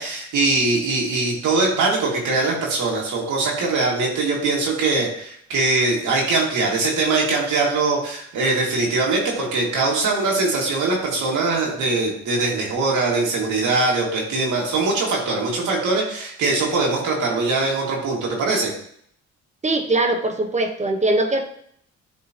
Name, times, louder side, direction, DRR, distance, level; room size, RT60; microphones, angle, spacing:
voice 1, 0.0-18.7, right 3 dB, 85° right, -2 dB, 2.2 m, -22 dB
voice 2, 19.6-21.4, right 2 dB, 25° right, 4 dB, 1.0 m, -21 dB
10.5 x 3.9 x 2.9 m, 0.66 s
cardioid pair, 90°, 30 cm